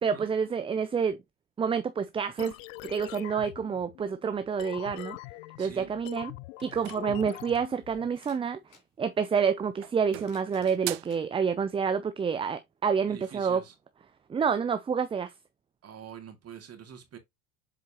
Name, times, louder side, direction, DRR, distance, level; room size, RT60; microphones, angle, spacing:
voice 1, 0.0-1.2 1.6-2.5 2.8-5.2 5.6-6.3 6.6-8.6 9.0-13.6 14.3-15.3, right 6 dB, 15° right, 0.4 m, -28 dB
sound 1, 2.4-8.1, left 18 dB, 75° left, 0.5 m, -43 dB
voice 2, 5.6-5.9 13.1-13.7 15.8-17.2, right 8 dB, 40° right, 2.2 m, -45 dB
sound 2, 6.6-7.8 9.1-9.5 9.8-11.3, right 19 dB, 65° right, 0.7 m, -41 dB
sound 3, 8.1-8.9 9.9-11.2 12.0-12.1 13.4-13.5, left 6 dB, 55° left, 2.8 m, -58 dB
7.5 x 4.4 x 2.8 m
hypercardioid pair, 85°, 40 cm